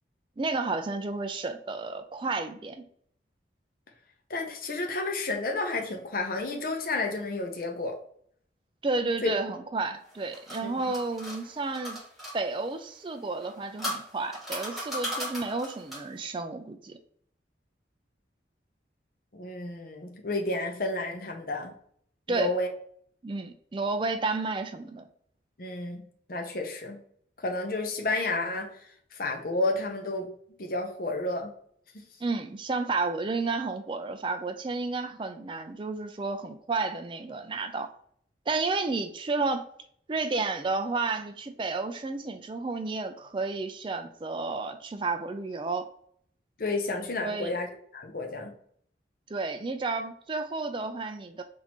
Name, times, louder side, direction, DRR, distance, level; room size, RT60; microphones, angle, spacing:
voice 1, 0.4-2.8 8.8-12.0 12.3-17.0 22.3-22.5 23.2-25.1 32.2-37.9 38.5-39.7 40.1-45.9 47.2-47.6 49.3-51.4, right 3 dB, 25° right, 6 dB, 0.3 m, -31 dB
voice 2, 4.3-8.0 9.2-9.3 10.6-10.9 19.3-21.7 22.3-22.7 25.6-27.0 27.4-28.8 29.1-30.3 30.6-31.5 46.6-47.7 47.9-48.5, left 2 dB, 50° left, 3 dB, 0.7 m, -31 dB
sound 1, 10.0-12.4 13.3-16.2, equal, ahead, 1.5 m, -37 dB
6.1 x 2.7 x 2.9 m, 0.63 s
head